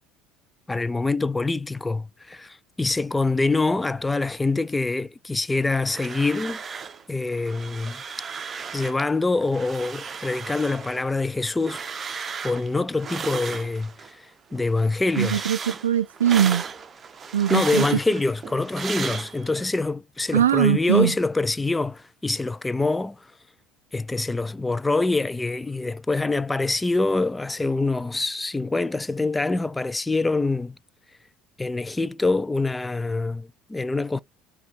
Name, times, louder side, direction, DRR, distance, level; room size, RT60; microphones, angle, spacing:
voice 1, 0.7-6.6 7.1-8.0 8.7-11.8 12.4-15.5 17.5-23.3 23.9-30.8 31.6-34.2, left 3 dB, 15° left, 0.3 m, -25 dB
sound 1, 5.6-7.0 7.3-9.1 9.4-14.1 14.5-19.7, right 5 dB, 30° right, 0.7 m, -35 dB
voice 2, 15.2-16.6 17.3-17.8 20.3-21.1, right 10 dB, 80° right, 0.3 m, -21 dB
5.7 x 2.4 x 3.2 m
figure-of-eight pair, 60°, 0 cm